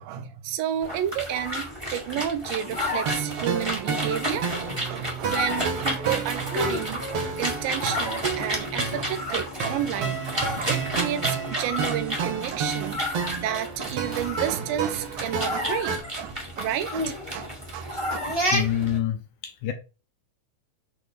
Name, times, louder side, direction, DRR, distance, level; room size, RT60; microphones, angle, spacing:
voice 1, 0.0-18.2, right 10 dB, 85° right, 2.5 m, -31 dB
sound 1, 0.8-19.0, equal, 10° right, 1.3 m, -31 dB
sound 2, 3.1-16.0, right 6 dB, 60° right, 1.9 m, -32 dB
voice 2, 18.5-19.7, left 10 dB, 70° left, 2.0 m, -27 dB
8.1 x 4.0 x 3.6 m
omnidirectional pair, 4.1 m